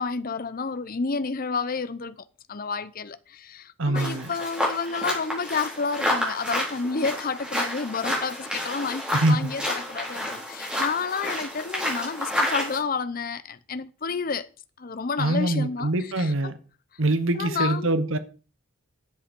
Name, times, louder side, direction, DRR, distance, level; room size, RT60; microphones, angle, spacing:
voice 1, 0.0-2.2 2.5-14.5 14.8-15.9 16.2-16.5 17.3-17.9, left 4 dB, 40° left, 0.7 m, -30 dB
voice 2, 3.8-4.3 9.1-9.5 15.2-16.6 17.0-18.2, right 2 dB, 65° right, 1.1 m, -24 dB
sound 1, 4.0-12.8, left 1 dB, 5° right, 3.9 m, -30 dB
10.5 x 7.8 x 5.3 m
head